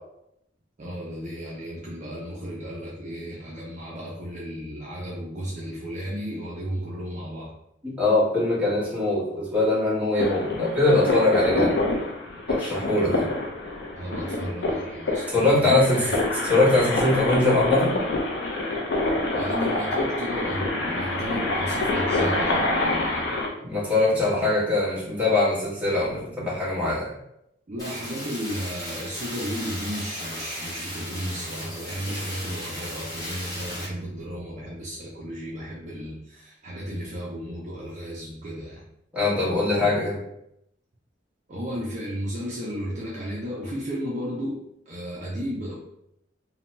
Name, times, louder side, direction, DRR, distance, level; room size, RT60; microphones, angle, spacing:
voice 1, 0.8-7.5 13.0-13.3 13.9-15.8 19.3-23.5 24.1-24.4 27.7-38.8 41.5-44.6 44.9-45.7, equal, 40° right, -5 dB, 0.5 m, -34 dB
voice 2, 7.8-11.8 12.5-13.3 15.3-16.0 16.4-18.0 23.6-27.1 39.1-40.2, left 2 dB, 10° right, -8 dB, 1.0 m, -22 dB
sound 1, 10.2-23.5, left 2 dB, 65° left, 0.5 m, -26 dB
sound 2, 27.8-33.9, equal, 20° left, 1.1 m, -36 dB
2.7 x 2.1 x 3.0 m, 0.81 s
head